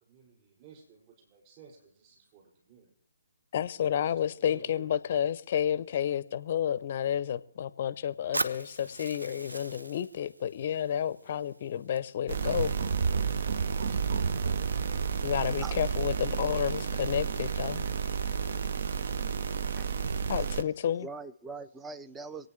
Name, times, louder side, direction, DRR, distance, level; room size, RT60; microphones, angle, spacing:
voice 1, 0.0-2.9 4.0-4.9 11.2-11.5, right 5 dB, 25° right, 6.3 m, -55 dB
voice 2, 3.5-12.7 15.2-17.9 20.3-21.1, left 9 dB, 40° left, 0.6 m, -30 dB
Fire, 8.3-12.3, right 2 dB, 80° right, 0.8 m, -39 dB
sound 1, 12.3-20.6, right 6 dB, 50° right, 0.6 m, -31 dB
voice 3, 21.0-22.5, right 4 dB, 10° right, 0.5 m, -43 dB
26.5 x 9.1 x 3.2 m
figure-of-eight pair, 140°, 0 cm